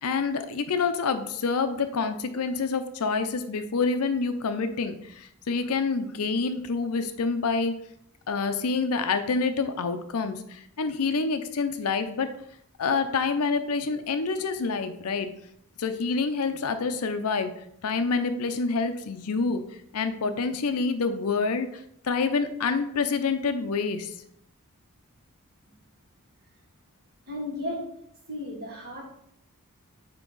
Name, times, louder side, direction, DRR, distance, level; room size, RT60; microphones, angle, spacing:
voice 1, 0.0-7.8 8.3-12.3 12.8-15.3 15.8-17.5 17.8-19.6 19.9-24.1, left 4 dB, 80° left, 9 dB, 0.6 m, -27 dB
voice 2, 27.3-27.9 28.3-29.0, left 1 dB, 45° right, -4 dB, 2.3 m, -34 dB
8.2 x 3.0 x 3.9 m, 0.74 s
head